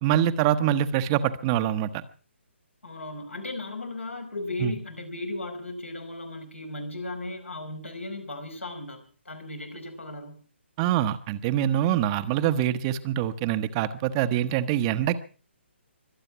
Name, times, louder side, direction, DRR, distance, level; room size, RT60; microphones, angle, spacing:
voice 1, 0.0-2.0 4.6-4.7 10.8-15.2, right 11 dB, 25° right, 11 dB, 1.0 m, -24 dB
voice 2, 2.8-10.4, left 2 dB, 85° left, 4 dB, 5.1 m, -36 dB
24.5 x 8.8 x 5.9 m, 0.39 s
figure-of-eight pair, 140°, 7 cm